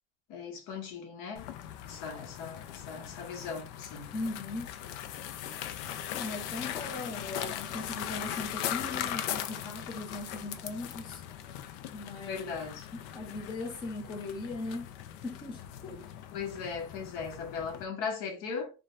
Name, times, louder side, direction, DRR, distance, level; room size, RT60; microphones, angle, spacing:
voice 1, 0.3-1.5 1.8-4.1 11.5-11.6 12.3-12.9 16.3-18.7, left 5 dB, 60° left, 1.0 m, -38 dB
sound 1, 1.4-17.9, left 11 dB, 85° left, 0.5 m, -39 dB
voice 2, 4.1-4.7 6.1-11.2 11.9-12.5 12.9-14.9 15.2-16.0, left 2 dB, 15° left, 0.4 m, -39 dB
2.6 x 2.3 x 3.1 m
cardioid pair, 175°, 37 cm